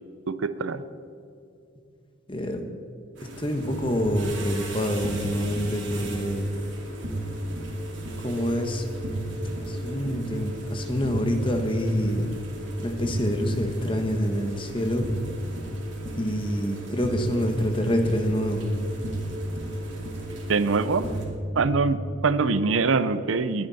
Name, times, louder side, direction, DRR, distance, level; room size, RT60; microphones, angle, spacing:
voice 1, 0.3-0.8 20.5-21.0 21.6-23.7, right 4 dB, 80° right, 13 dB, 0.6 m, -24 dB
voice 2, 2.3-2.6 3.4-6.5 8.2-8.8 9.6-12.3 12.8-15.1 16.1-18.7, equal, 25° left, 5 dB, 1.3 m, -26 dB
sound 1, 3.1-21.2, right 1 dB, 65° right, 2.9 m, -41 dB
sound 2, 3.6-21.6, right 1 dB, 45° right, 1.8 m, -34 dB
20.5 x 9.7 x 4.2 m, 2.6 s
head